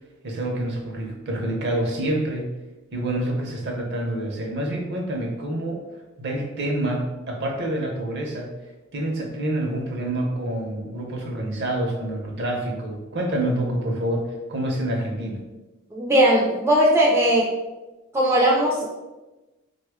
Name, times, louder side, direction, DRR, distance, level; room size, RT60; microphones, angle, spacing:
voice 1, 0.2-2.5 2.9-5.8 6.2-8.5 8.9-15.4, right 1 dB, 55° right, 1 dB, 0.7 m, -27 dB
voice 2, 15.9-17.5 18.1-18.9, right 1 dB, 15° right, -3 dB, 0.4 m, -18 dB
3.1 x 2.2 x 3.5 m, 1.1 s
head